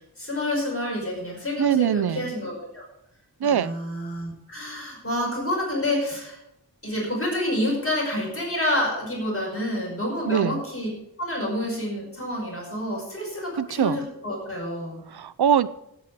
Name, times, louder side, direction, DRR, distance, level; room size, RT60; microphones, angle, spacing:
voice 1, 0.0-2.8 3.4-6.4 6.8-10.9 11.2-15.0, left 1 dB, 35° left, -2 dB, 5.4 m, -28 dB
voice 2, 1.6-2.3 3.4-3.7 10.3-10.6 13.6-14.0 15.1-15.7, right 8 dB, 75° right, 17 dB, 0.6 m, -22 dB
16.5 x 8.3 x 4.9 m, 0.82 s
wide cardioid pair, 80°, 38 cm